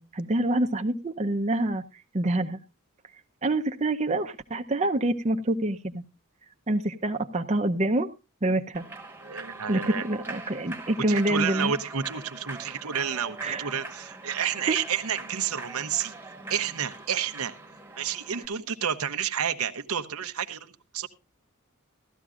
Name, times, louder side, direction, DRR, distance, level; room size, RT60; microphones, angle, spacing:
voice 1, 0.0-1.8 2.1-2.6 3.4-6.0 6.7-8.1 8.4-8.9 9.7-11.7 13.4-13.7 14.7-14.8, right 1 dB, 30° right, 4 dB, 0.7 m, -26 dB
Human voice / Clapping / Cheering, 8.7-18.5, right 3 dB, 10° right, 1.2 m, -42 dB
voice 2, 9.2-10.0 11.1-16.1 16.5-17.5 18.0-21.1, right 8 dB, 80° right, 8 dB, 0.9 m, -30 dB
16.5 x 13.0 x 2.4 m, 0.26 s
head